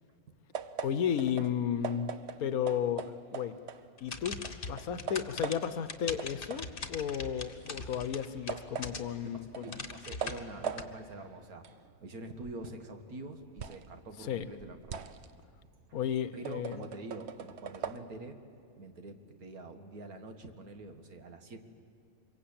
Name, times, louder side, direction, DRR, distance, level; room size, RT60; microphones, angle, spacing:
sound 1, 0.5-4.2 4.4-5.9 6.2-13.9 14.3-18.0, right 7 dB, 50° right, 1.0 m, -42 dB
voice 1, 0.8-2.1 2.4-3.6 4.0-4.4 4.7-9.7 14.2-14.5 15.9-16.8, left 8 dB, 75° left, 13 dB, 1.3 m, -33 dB
sound 2, 4.0-9.3 9.7-10.8, left 4 dB, 40° left, 1.3 m, -41 dB
voice 2, 9.6-11.7 12.0-15.1 15.9-16.0 16.3-18.4 18.8-21.6, right 2 dB, 75° right, 6 dB, 2.1 m, -45 dB
26.0 x 23.0 x 8.7 m, 2.4 s
omnidirectional pair, 1.6 m